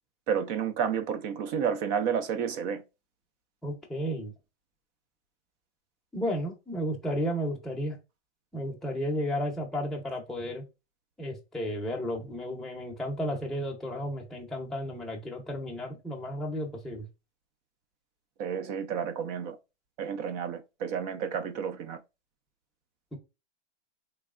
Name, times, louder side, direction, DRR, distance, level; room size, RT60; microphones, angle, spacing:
voice 1, 0.3-2.8 18.4-19.6 20.0-22.0, right 7 dB, 35° right, 0.5 m, -31 dB
voice 2, 3.6-4.3 6.1-8.0 8.5-10.6 11.2-17.1, equal, ahead, 0.7 m, -33 dB
3.3 x 3.2 x 2.4 m
hypercardioid pair, 130°, 35 cm